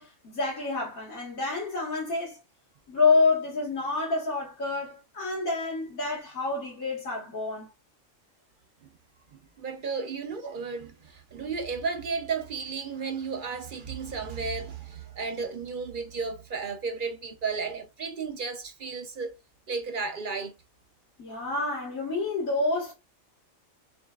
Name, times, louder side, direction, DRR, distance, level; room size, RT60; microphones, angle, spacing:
voice 1, 0.0-2.4 2.9-7.7 9.9-10.0 21.2-22.9, left 3 dB, 85° left, 2.1 m, -28 dB
voice 2, 9.3-19.4 19.7-20.5, right 5 dB, 50° right, 0.7 m, -33 dB
6.9 x 2.4 x 2.3 m
omnidirectional pair, 1.4 m